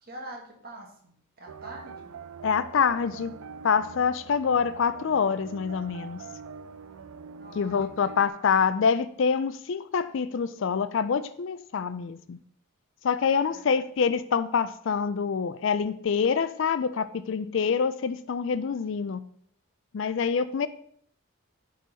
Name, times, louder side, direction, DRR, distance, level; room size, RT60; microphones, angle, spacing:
voice 1, 0.0-2.1 7.4-8.5 13.5-13.8, right 1 dB, 45° right, 0 dB, 1.6 m, -45 dB
sound 1, 1.5-8.3, right 5 dB, 75° right, 0.4 m, -44 dB
voice 2, 2.4-3.3 3.6-6.2 7.6-12.4 13.0-19.2 19.9-20.7, left 6 dB, 60° left, 13 dB, 0.4 m, -26 dB
10.5 x 3.9 x 4.0 m, 0.63 s
head